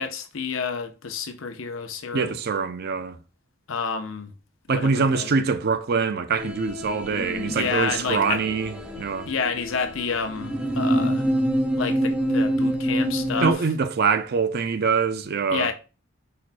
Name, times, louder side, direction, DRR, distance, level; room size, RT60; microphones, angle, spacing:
voice 1, 0.0-2.4 3.7-4.3 4.7-5.3 7.5-8.4 9.3-11.3 11.8-13.5 15.5-15.7, left 5 dB, 75° left, 0.7 m, -29 dB
voice 2, 2.1-3.2 4.7-9.3 13.4-15.7, right 5 dB, 50° right, 0.4 m, -24 dB
sound 1, 6.4-13.5, equal, 5° right, 0.8 m, -26 dB
4.6 x 4.2 x 2.2 m
head